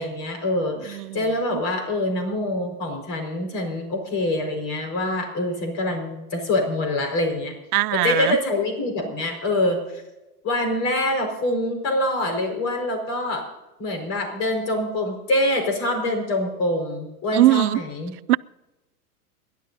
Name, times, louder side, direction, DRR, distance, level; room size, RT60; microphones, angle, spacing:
voice 1, 0.0-7.5 7.9-9.8 10.4-13.4 13.8-18.1, left 1 dB, 35° left, 5.1 m, -25 dB
voice 2, 0.9-1.2 7.7-8.4 17.3-17.8 18.3-18.4, right 16 dB, 80° right, 0.5 m, -20 dB
30.0 x 12.0 x 2.7 m
supercardioid pair, 145°, 44 cm